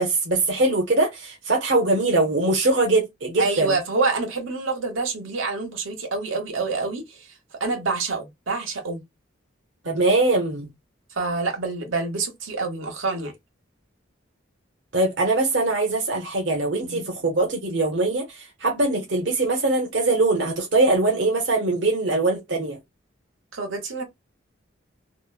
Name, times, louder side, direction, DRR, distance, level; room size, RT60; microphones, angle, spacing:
voice 1, 0.0-3.7 9.8-10.7 14.9-18.3 18.6-22.8, right 2 dB, 65° right, 0.8 m, -22 dB
voice 2, 3.4-7.3 7.6-9.0 11.2-13.3 16.8-17.1 23.5-24.0, right 3 dB, 85° right, 1.0 m, -27 dB
2.9 x 2.1 x 2.2 m
head